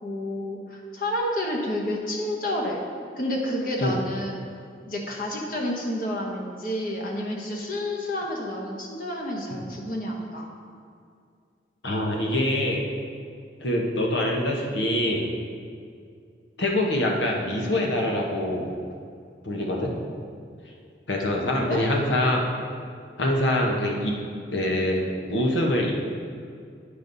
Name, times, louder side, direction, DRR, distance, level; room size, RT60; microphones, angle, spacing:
voice 1, 0.0-2.8 3.2-4.4 4.9-10.5 21.6-21.8, left 1 dB, 50° left, -1 dB, 1.1 m, -30 dB
voice 2, 11.8-12.8 13.6-15.2 16.6-18.7 19.4-19.9 21.1-22.4 23.2-24.1 24.5-25.9, left 1 dB, 85° left, -1 dB, 1.2 m, -24 dB
9.2 x 5.2 x 4.0 m, 2.3 s
head